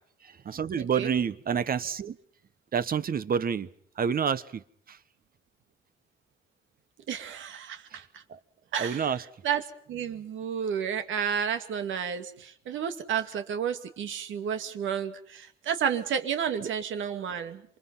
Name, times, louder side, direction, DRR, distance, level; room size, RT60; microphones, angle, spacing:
voice 1, 0.2-2.2 2.7-3.7 4.0-5.0 7.9-8.0 8.3-8.4 8.8-9.2 16.6-16.7, right 7 dB, 45° right, 14 dB, 1.3 m, -29 dB
voice 2, 0.8-1.1 7.1-8.2 8.7-9.1 9.4-9.6 9.9-17.6, right 8 dB, 75° right, 8 dB, 2.5 m, -31 dB
27.5 x 23.5 x 5.7 m, 0.62 s
cardioid pair, 90°, 20 cm